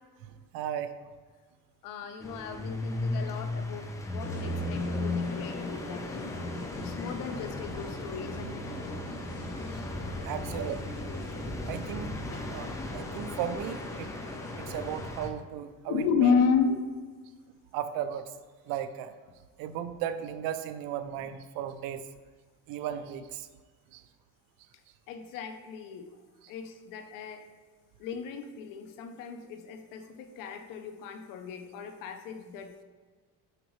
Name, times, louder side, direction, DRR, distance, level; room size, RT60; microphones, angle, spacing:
voice 1, 0.5-1.0 10.2-11.0 11.7-12.1 12.4-14.1 14.6-16.3 17.7-18.3 18.7-19.1 19.6-22.1 22.7-23.5 23.9-24.0 26.4-26.5, right 9 dB, 85° right, 10 dB, 0.6 m, -36 dB
voice 2, 1.8-6.3 6.7-8.7 10.4-10.6 15.9-16.8 25.1-26.1 26.5-27.4 28.0-32.8, left 6 dB, 70° left, 6 dB, 0.8 m, -33 dB
sound 1, 2.2-15.3, left 2 dB, 10° left, 0.4 m, -37 dB
sound 2, 4.2-15.1, left 2 dB, 45° left, 1.0 m, -41 dB
7.6 x 5.1 x 3.2 m, 1.5 s
cardioid pair, 145°, 34 cm